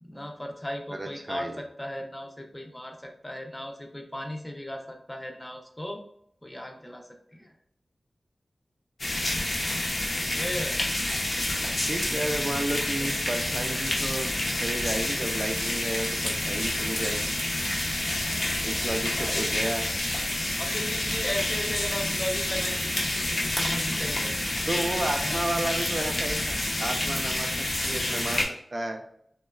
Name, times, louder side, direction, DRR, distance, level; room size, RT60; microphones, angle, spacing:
voice 1, 0.0-6.0 6.4-7.5 10.2-10.8 13.0-13.1 19.0-19.5 20.6-23.0 23.4-24.5 25.2-25.4, equal, 15° left, 2 dB, 0.5 m, -36 dB
voice 2, 1.0-1.6 11.9-14.3 14.6-17.4 18.6-19.9 24.7-29.0, right 1 dB, 40° right, 4 dB, 0.3 m, -32 dB
sound 1, 9.0-28.4, left 1 dB, 65° left, 0.6 m, -28 dB
3.0 x 2.1 x 2.3 m, 0.68 s
wide cardioid pair, 60°, 0 cm